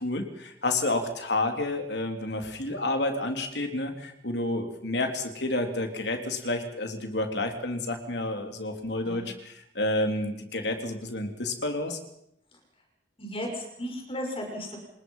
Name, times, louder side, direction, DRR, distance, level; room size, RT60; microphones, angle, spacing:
voice 1, 0.0-12.0, left 2 dB, 70° left, 5 dB, 3.6 m, -30 dB
voice 2, 13.2-14.8, equal, 35° left, 2 dB, 6.1 m, -35 dB
28.5 x 20.0 x 5.7 m, 0.76 s
head